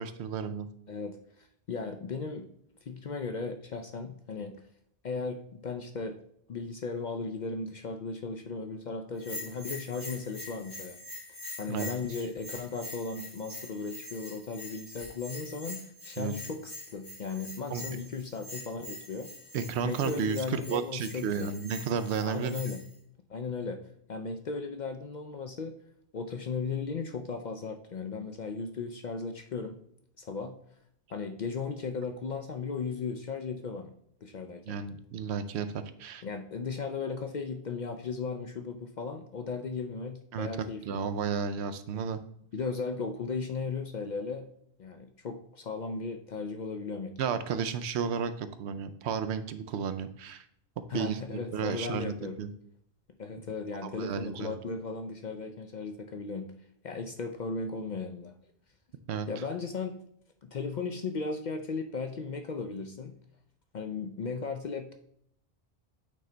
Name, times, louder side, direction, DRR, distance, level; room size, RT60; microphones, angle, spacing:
voice 1, 0.0-0.7 11.7-12.0 16.2-16.4 17.7-17.8 19.5-22.7 34.7-36.2 40.3-42.2 47.2-50.4 50.8-52.5 53.8-54.6 59.1-59.3, right 6 dB, 75° right, 10 dB, 0.8 m, -33 dB
voice 2, 0.9-2.5 2.9-4.6 5.0-6.2 6.5-11.0 11.6-19.3 19.8-21.5 22.2-22.8 23.3-23.8 24.1-25.7 26.1-29.8 30.2-30.6 31.1-33.9 34.2-34.8 36.2-41.0 42.5-44.5 44.8-47.1 50.9-52.4 53.2-56.5 56.8-58.4 59.3-59.9 60.4-63.1 63.7-64.9, left 4 dB, 55° left, 7 dB, 0.5 m, -36 dB
Bell, 9.2-22.9, left 2 dB, 75° left, 2.4 m, -44 dB
8.5 x 3.3 x 3.8 m, 0.69 s
omnidirectional pair, 1.1 m